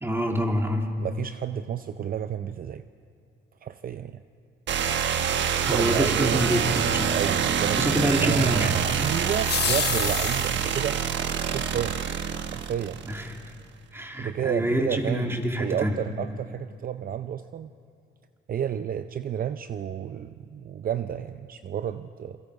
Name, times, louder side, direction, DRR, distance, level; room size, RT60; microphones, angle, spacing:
voice 1, 0.0-1.0 5.7-7.2 7.8-8.7 13.1-13.2 13.9-16.0, equal, 10° right, 2 dB, 2.6 m, -26 dB
voice 2, 1.0-2.8 3.6-4.2 5.6-6.5 7.1-11.0 11.5-12.0 12.5-13.1 14.2-17.7 18.5-22.4, right 9 dB, 45° right, 11 dB, 0.6 m, -31 dB
sound 1, 4.7-13.4, right 8 dB, 65° right, 1.2 m, -26 dB
sound 2, 8.7-10.9, left 9 dB, 55° left, 1.1 m, -30 dB
27.5 x 23.0 x 4.8 m, 2.4 s
cardioid pair, 90°, 20 cm